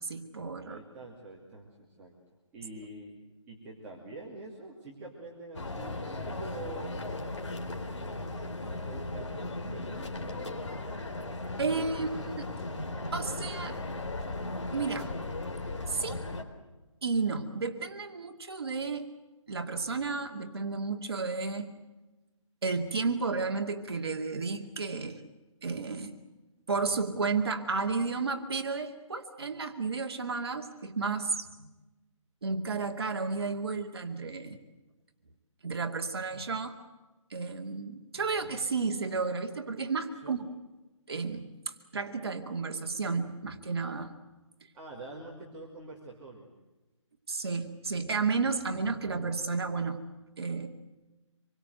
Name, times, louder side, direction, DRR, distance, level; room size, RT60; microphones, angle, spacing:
voice 1, 0.0-0.8 11.6-12.5 13.1-13.8 14.7-15.1 15.9-16.2 17.0-19.1 19.5-21.8 22.6-25.2 25.6-26.2 26.7-31.7 32.4-34.6 35.6-36.7 37.3-40.4 41.1-44.1 47.3-50.0 50.4-50.7, right 4 dB, 50° right, 4 dB, 2.4 m, -32 dB
voice 2, 0.6-2.1 2.5-3.2 3.5-7.0 7.8-10.6 11.6-12.0 40.2-40.4 44.7-46.5, right 2 dB, 10° right, -6 dB, 2.5 m, -46 dB
sound 1, 5.5-16.4, left 2 dB, 60° left, 4.1 m, -37 dB
26.5 x 23.5 x 8.0 m, 1.1 s
hypercardioid pair, 175°, 17 cm